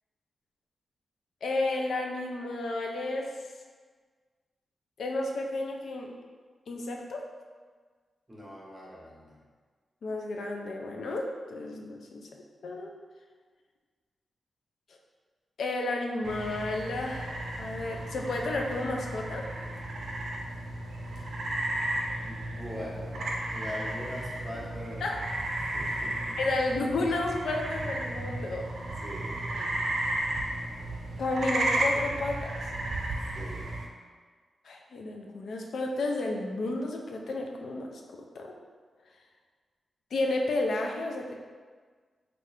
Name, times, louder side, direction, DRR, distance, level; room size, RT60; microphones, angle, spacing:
voice 1, 1.4-3.4 5.0-6.1 6.7-7.3 10.0-12.9 15.6-19.5 25.0-25.2 26.4-28.7 31.2-32.5 34.6-38.0 38.4-38.6 40.1-41.3, left 2 dB, 80° left, 1 dB, 0.4 m, -32 dB
voice 2, 8.3-9.4 22.2-25.2 25.6-26.4 29.0-29.6 33.3-33.7, equal, 20° right, -5 dB, 0.9 m, -42 dB
sound 1, 16.2-33.9, right 1 dB, 75° right, 0.5 m, -34 dB
3.6 x 2.4 x 3.2 m, 1.5 s
cardioid pair, 70°, 0 cm